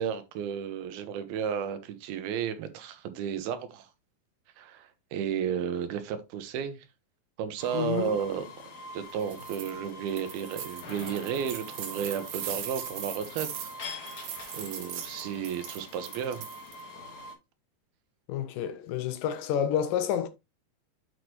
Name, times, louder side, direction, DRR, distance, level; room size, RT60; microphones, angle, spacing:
voice 1, 0.0-3.9 4.6-6.9 7.4-13.7 14.0-14.2 14.5-16.4, right 8 dB, 90° right, 2.9 m, -33 dB
sound 1, 7.6-17.3, left 2 dB, 50° left, 2.4 m, -44 dB
voice 2, 7.7-8.2 18.3-20.3, left 9 dB, 80° left, 2.2 m, -29 dB
sound 2, 9.2-9.7 10.1-16.8, right 9 dB, 75° right, 3.1 m, -40 dB
8.4 x 6.2 x 3.1 m
omnidirectional pair, 4.3 m